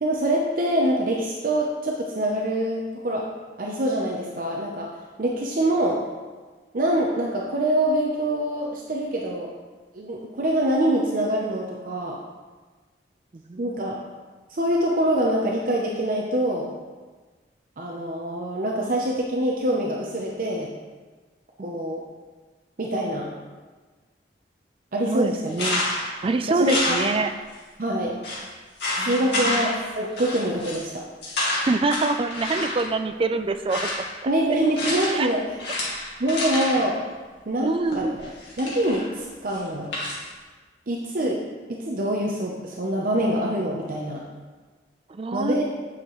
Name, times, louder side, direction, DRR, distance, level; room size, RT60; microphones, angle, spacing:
voice 1, 0.0-3.3 3.6-4.9 5.2-6.0 6.7-9.5 9.9-12.2 13.6-14.0 14.5-16.7 17.8-20.7 21.6-22.0 22.8-23.3 24.9-25.5 26.5-26.9 27.8-28.2 29.0-31.0 34.3-35.4 36.2-37.0 37.5-38.3 38.6-39.9 40.9-41.4 41.7-44.2 45.3-45.6, right 1 dB, 50° right, -2 dB, 0.7 m, -25 dB
voice 2, 13.5-13.8 21.6-21.7 25.1-25.8 26.2-27.3 29.0-29.7 31.7-34.1 35.1-35.3 37.6-38.2 45.1-45.6, right 3 dB, 30° right, 9 dB, 0.3 m, -25 dB
sound 1, 25.5-26.2 26.6-27.5 27.8-27.9 28.2-28.4 28.8-29.9 30.2-30.9 31.2-32.9 33.5-34.1 34.8-35.3 35.6-36.9 37.9-39.1 39.5-40.2, left 1 dB, 70° left, 2.1 m, -28 dB
8.5 x 6.6 x 3.1 m, 1.4 s
head